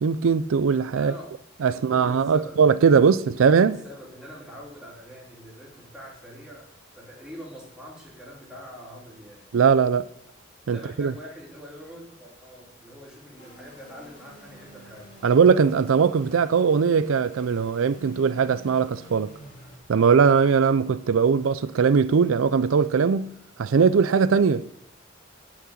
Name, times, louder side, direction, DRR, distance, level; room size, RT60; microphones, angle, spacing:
voice 1, 0.0-1.1 1.6-3.8 9.5-10.1 10.7-11.1 15.2-19.3 19.9-24.6, right 6 dB, 85° right, 0.4 m, -20 dB
voice 2, 1.0-2.7 3.4-9.5 10.7-15.2, equal, 5° right, 3.1 m, -44 dB
sound 1, 13.4-19.8, left 1 dB, 40° left, 2.5 m, -49 dB
8.6 x 6.0 x 7.2 m
head